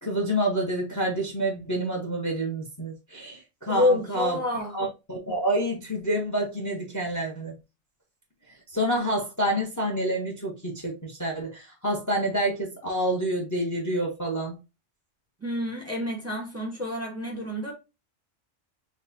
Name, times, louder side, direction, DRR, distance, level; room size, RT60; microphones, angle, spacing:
voice 1, 0.0-4.4 4.7-7.5 8.7-14.6, right 1 dB, 15° left, 1.0 m, -28 dB
voice 2, 3.7-4.7 15.4-17.7, left 1 dB, 10° right, 1.2 m, -28 dB
6.2 x 2.5 x 2.7 m
omnidirectional pair, 1.3 m